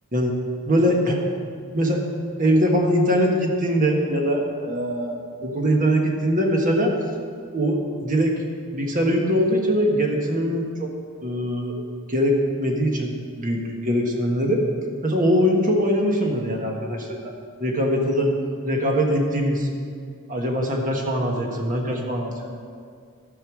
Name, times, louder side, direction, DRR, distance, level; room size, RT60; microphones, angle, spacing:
voice 1, 0.7-1.2 1.7-2.0 2.4-6.9 7.5-8.3 8.7-10.9 11.2-11.8 12.1-14.6 15.0-17.3 17.6-18.3 18.6-19.7 20.3-22.6, equal, 40° right, 1 dB, 1.4 m, -22 dB
14.0 x 5.6 x 6.2 m, 2.2 s
head